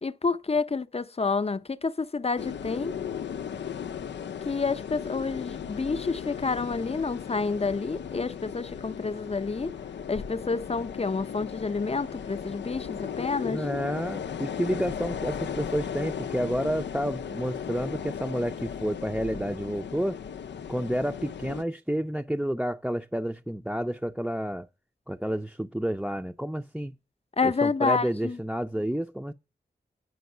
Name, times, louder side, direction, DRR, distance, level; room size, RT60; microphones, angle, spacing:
voice 1, 0.0-2.9 4.5-9.7 10.1-13.7 27.4-28.4, left 4 dB, 35° left, 0.6 m, -29 dB
sound 1, 2.4-21.6, left 8 dB, 90° left, 0.5 m, -36 dB
voice 2, 13.4-20.2 20.7-24.7 25.1-26.9 27.4-29.3, equal, 5° right, 0.6 m, -30 dB
9.5 x 5.3 x 6.6 m
cardioid pair, 55°, 18 cm